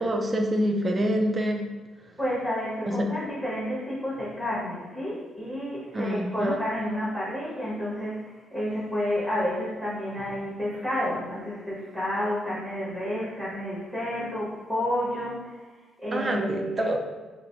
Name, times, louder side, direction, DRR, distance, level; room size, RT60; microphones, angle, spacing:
voice 1, 0.0-1.7 2.9-3.1 5.9-6.6 16.1-17.0, equal, 30° right, 3 dB, 0.5 m, -26 dB
voice 2, 2.2-15.6 16.0-16.8, equal, 5° left, -8 dB, 1.4 m, -30 dB
5.7 x 2.1 x 2.6 m, 1.3 s
cardioid pair, 90°, 0 cm